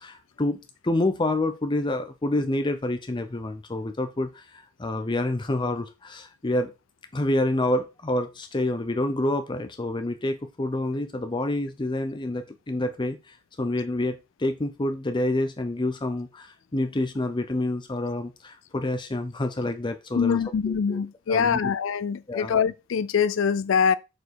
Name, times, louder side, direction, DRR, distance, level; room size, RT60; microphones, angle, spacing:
voice 1, 0.0-6.7 7.1-21.0 21.3-21.6 22.3-22.6, left 1 dB, 25° left, 0.6 m, -28 dB
voice 2, 20.2-23.9, left 6 dB, 65° left, 0.4 m, -24 dB
6.8 x 4.4 x 4.6 m
head